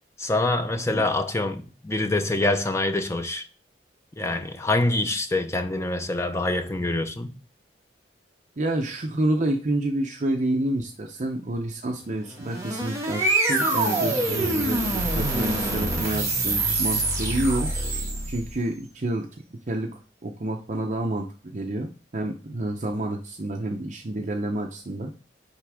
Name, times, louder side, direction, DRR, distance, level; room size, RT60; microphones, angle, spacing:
voice 1, 0.2-3.4 4.2-7.3, left 2 dB, 15° left, 0.6 m, -25 dB
voice 2, 8.6-17.7 18.3-19.3 19.7-25.1, right 1 dB, 40° right, 0.6 m, -29 dB
sound 1, 12.2-18.6, right 2 dB, 20° right, 1.8 m, -25 dB
9.6 x 3.5 x 3.5 m
head